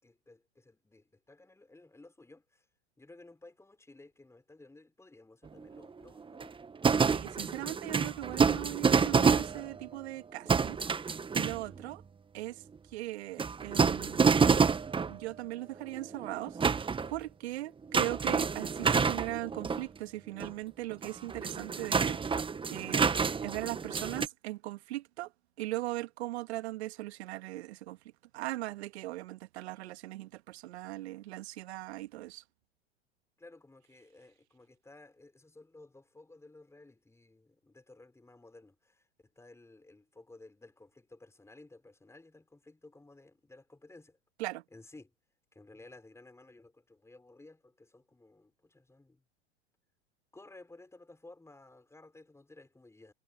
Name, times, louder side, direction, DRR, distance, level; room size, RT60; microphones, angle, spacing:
voice 1, 0.0-2.6 3.0-6.7 33.4-39.1 39.4-44.2 44.7-45.1 45.5-49.2 50.3-53.1, left 2 dB, 10° left, 6.1 m, -56 dB
sound 1, 5.5-5.8 6.2-10.0 10.5-11.8 13.4-15.2 15.9-17.2 17.9-19.8 20.4-20.5 20.9-24.3, right 5 dB, 15° right, 1.3 m, -28 dB
voice 2, 7.0-12.0 12.3-12.6 12.9-14.6 15.1-22.4 22.7-25.3 25.6-28.0 28.3-32.4 44.4-44.6, right 17 dB, 70° right, 1.9 m, -39 dB
hypercardioid pair, 95°, 35 cm